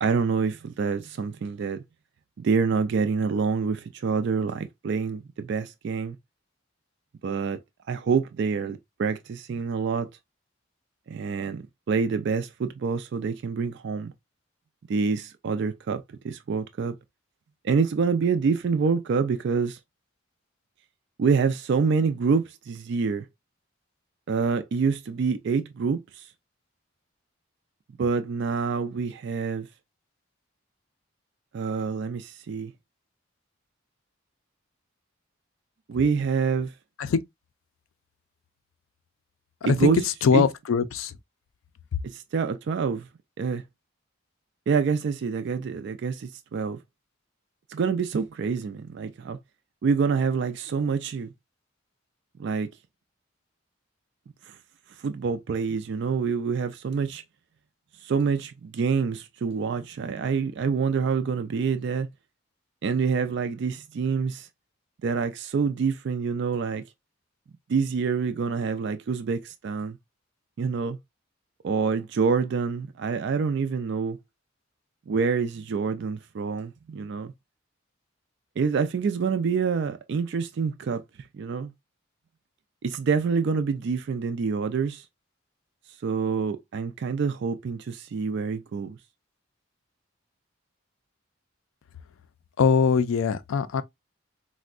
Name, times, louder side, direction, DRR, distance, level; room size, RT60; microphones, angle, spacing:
voice 1, 0.0-1.8 2.4-6.2 7.2-7.6 7.9-10.1 11.1-14.1 14.9-17.0 17.6-19.8 21.2-23.3 24.3-26.3 28.0-29.7 31.5-32.7 35.9-36.7 39.6-40.0 40.3-40.5 42.0-43.1 43.4-43.6 44.7-46.8 47.7-49.4 49.8-51.3 52.4-52.7 54.5-54.6 55.0-57.2 58.0-62.1 62.8-64.5 65.0-66.8 67.7-70.0 70.6-71.0 71.6-74.2 75.1-77.3 78.6-81.0 81.3-81.7 82.8-85.0 86.0-89.0, right 5 dB, 55° right, 0.3 m, -26 dB
voice 2, 39.6-39.9 40.2-41.1 92.6-93.8, left 6 dB, 75° left, 0.4 m, -22 dB
4.3 x 2.1 x 2.3 m
head